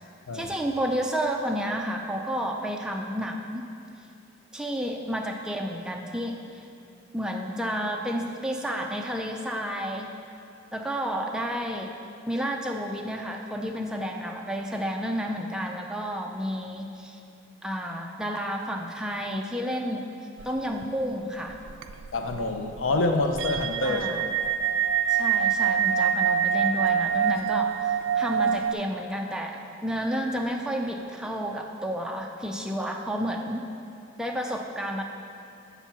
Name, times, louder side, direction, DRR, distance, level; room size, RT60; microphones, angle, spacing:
voice 1, 0.3-3.6 4.5-6.4 7.1-10.1 10.7-11.9 12.3-17.2 17.6-20.0 20.4-21.6 23.8-24.2 25.1-33.6 34.2-35.0, equal, 5° right, 1 dB, 0.4 m, -31 dB
sound 1, 20.4-20.9 21.1-21.2 21.5-28.7, right 8 dB, 75° right, 0.3 m, -25 dB
voice 2, 22.1-24.2, left 2 dB, 80° left, 5 dB, 0.6 m, -27 dB
6.8 x 4.5 x 5.7 m, 2.6 s
head